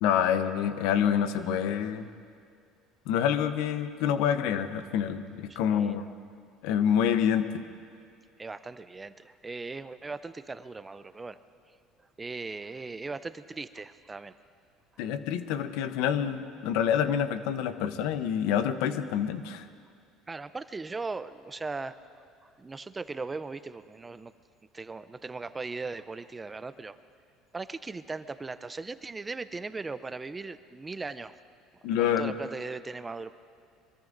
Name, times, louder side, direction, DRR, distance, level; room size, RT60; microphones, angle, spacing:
voice 1, 0.0-2.1 3.1-6.0 6.6-7.5 15.0-19.7 31.8-32.3, left 9 dB, 75° left, 10 dB, 0.8 m, -27 dB
voice 2, 5.5-6.1 8.4-11.4 12.2-14.4 20.3-22.0 22.4-24.3 24.7-27.0 27.5-31.4 31.9-33.3, right 3 dB, 20° right, 13 dB, 0.6 m, -38 dB
24.0 x 23.0 x 2.6 m, 2.2 s
supercardioid pair, 95°, 0 cm